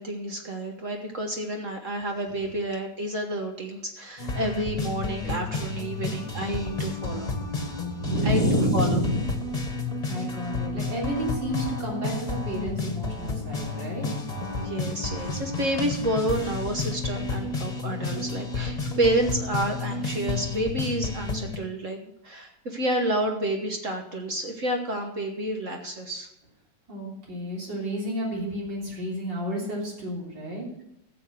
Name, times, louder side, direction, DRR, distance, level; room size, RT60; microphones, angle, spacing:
voice 1, 0.0-7.4 8.2-9.0 14.5-22.0 22.2-26.3, right 1 dB, 45° right, 3 dB, 1.5 m, -29 dB
sound 1, 4.2-21.6, left 3 dB, 25° left, 1.5 m, -31 dB
voice 2, 7.9-9.2 10.1-14.1 26.9-30.7, equal, 70° right, -3 dB, 4.2 m, -29 dB
14.0 x 7.3 x 6.5 m, 0.82 s
omnidirectional pair, 2.0 m